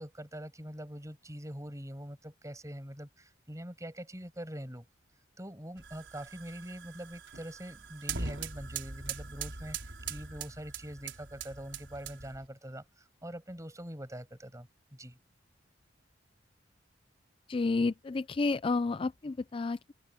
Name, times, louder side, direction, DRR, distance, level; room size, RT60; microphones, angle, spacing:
voice 1, 0.0-4.9 5.4-15.2, equal, 15° right, 7.7 m, -44 dB
sound 1, 5.8-12.5, right 5 dB, 75° right, 4.5 m, -42 dB
voice 2, 17.5-19.9, left 3 dB, 30° left, 0.4 m, -30 dB
open air
head